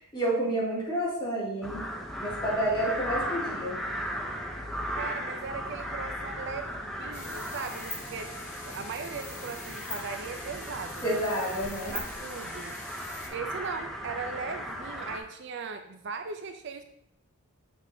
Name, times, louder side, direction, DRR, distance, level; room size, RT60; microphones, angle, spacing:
voice 1, 0.1-1.8 2.2-3.8 11.0-11.9, right 1 dB, 20° left, -7 dB, 2.2 m, -29 dB
sound 1, 1.6-15.2, equal, ahead, 0.6 m, -37 dB
voice 2, 4.9-8.3 8.7-11.2 11.9-12.8 13.3-16.8, right 5 dB, 55° right, 7 dB, 0.4 m, -38 dB
sound 2, 7.1-13.3, left 3 dB, 85° left, 2.0 m, -43 dB
6.8 x 6.1 x 2.7 m, 0.75 s
head